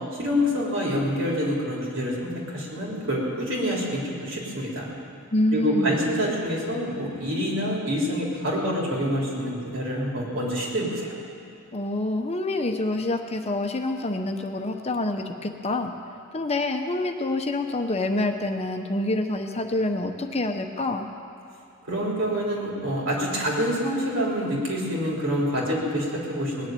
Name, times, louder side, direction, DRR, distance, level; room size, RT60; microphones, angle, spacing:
voice 1, 0.1-4.9 5.5-11.1 21.9-26.7, equal, 70° right, -3 dB, 3.7 m, -26 dB
voice 2, 5.3-6.0 11.7-15.9 16.3-21.1, left 2 dB, 30° left, 5 dB, 0.8 m, -27 dB
19.5 x 7.1 x 9.2 m, 2.7 s
head